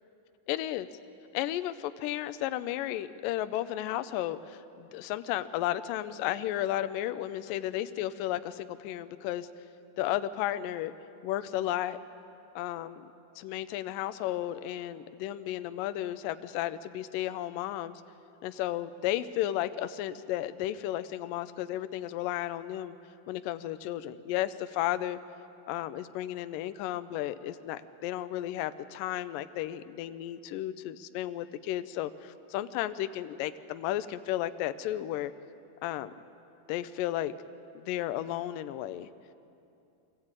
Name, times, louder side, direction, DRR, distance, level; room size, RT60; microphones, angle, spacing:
voice 1, 0.5-0.9 1.3-9.5 10.0-10.9 11.2-12.0 12.6-13.1 13.4-18.0 18.4-22.9 23.3-25.2 25.7-35.3 35.8-36.1 36.7-37.3 37.8-39.1, left 13 dB, 80° left, 11 dB, 2.0 m, -33 dB
23.0 x 15.0 x 8.8 m, 2.7 s
omnidirectional pair, 4.4 m